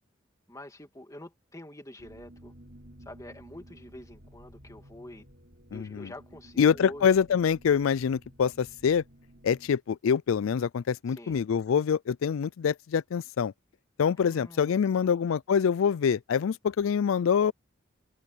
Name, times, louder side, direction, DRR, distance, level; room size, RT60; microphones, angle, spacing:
voice 1, 0.5-2.5 3.1-5.3 5.7-7.1 11.1-11.3 14.2-15.2, left 1 dB, 15° left, 2.5 m, -46 dB
sound 1, 2.0-9.7, equal, 55° right, 4.8 m, -53 dB
voice 2, 5.7-6.1 6.6-9.0 9.4-13.5 14.0-17.5, left 7 dB, 80° left, 0.4 m, -25 dB
head